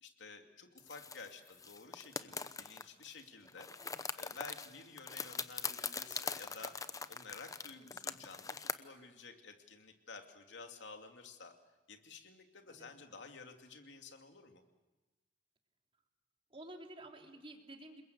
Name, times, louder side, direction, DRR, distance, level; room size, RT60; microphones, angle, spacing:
voice 1, 0.0-3.7 4.1-6.8 7.1-11.5 11.9-14.6, left 4 dB, 85° left, 4 dB, 2.6 m, -52 dB
sound 1, 0.8-3.2 3.5-8.7, left 5 dB, 20° left, 0.8 m, -42 dB
voice 2, 16.5-18.0, right 1 dB, 30° right, 2 dB, 3.2 m, -52 dB
28.5 x 21.5 x 8.0 m, 1.2 s
head